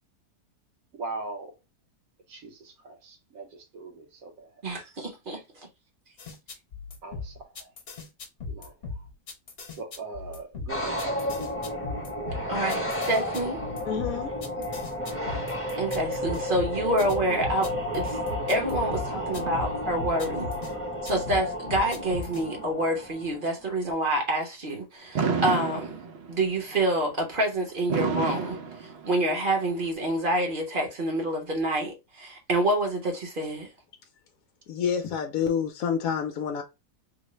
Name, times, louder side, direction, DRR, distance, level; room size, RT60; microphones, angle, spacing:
voice 1, 0.9-1.5 2.3-4.6 7.0-7.7 8.5-9.0 9.8-11.6 19.3-19.6 20.1-20.9, right 3 dB, 65° right, 1.4 m, -41 dB
voice 2, 4.6-5.4 12.5-13.6 15.8-18.2 18.5-20.5 21.0-26.0 26.3-33.7, right 1 dB, 40° right, 0.9 m, -27 dB
sound 1, 6.2-20.7 21.0-22.4, left 3 dB, 55° left, 1.2 m, -38 dB
sound 2, 10.7-23.7, left 1 dB, 10° left, 0.8 m, -32 dB
voice 3, 13.9-14.4 34.7-36.6, left 7 dB, 70° left, 1.0 m, -28 dB
Fireworks, 25.1-26.5 27.9-29.4, right 5 dB, 80° right, 0.5 m, -29 dB
3.9 x 2.1 x 3.0 m
omnidirectional pair, 1.7 m